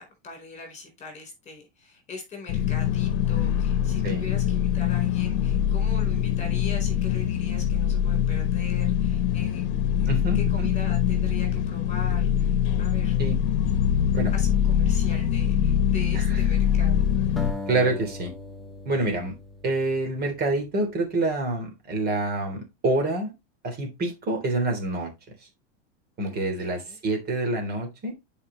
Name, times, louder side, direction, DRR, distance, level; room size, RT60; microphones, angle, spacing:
voice 1, 0.0-9.6 10.0-13.2 14.3-17.4 26.3-27.0, left 3 dB, 20° left, 3 dB, 4.1 m, -42 dB
sound 1, 2.5-17.5, left 9 dB, 55° left, 1.2 m, -23 dB
voice 2, 10.1-10.7 13.2-13.4 14.1-14.3 16.1-16.4 17.7-18.3 18.8-19.3 19.6-23.3 23.6-25.1 26.2-28.1, right 2 dB, 30° right, 2 dB, 3.3 m, -27 dB
sound 2, 17.4-20.6, left 2 dB, ahead, 1.0 m, -38 dB
9.8 x 5.1 x 3.2 m, 0.22 s
supercardioid pair, 135°, 33 cm